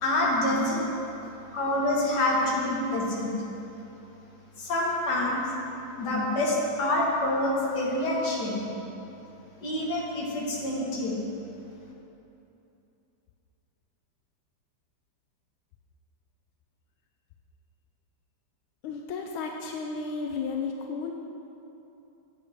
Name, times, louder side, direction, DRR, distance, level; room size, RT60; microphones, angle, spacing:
voice 1, 0.0-0.9 1.5-3.3 4.6-5.4 6.0-8.6 9.6-11.2, left 1 dB, 55° left, -4 dB, 2.0 m, -27 dB
voice 2, 18.8-21.1, left 4 dB, 85° left, 2 dB, 1.4 m, -33 dB
10.0 x 8.8 x 3.5 m, 2.9 s
omnidirectional pair, 2.2 m